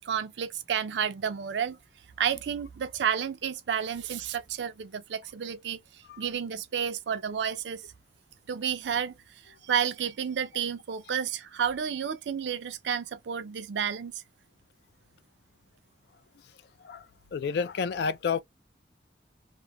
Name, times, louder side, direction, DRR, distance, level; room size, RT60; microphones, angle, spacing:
voice 1, 0.1-1.8 2.2-5.8 6.2-7.8 8.5-9.1 9.7-14.1, right 8 dB, 85° right, 0.4 m, -31 dB
voice 2, 17.3-18.4, left 5 dB, 70° left, 0.3 m, -29 dB
3.0 x 2.0 x 2.2 m
head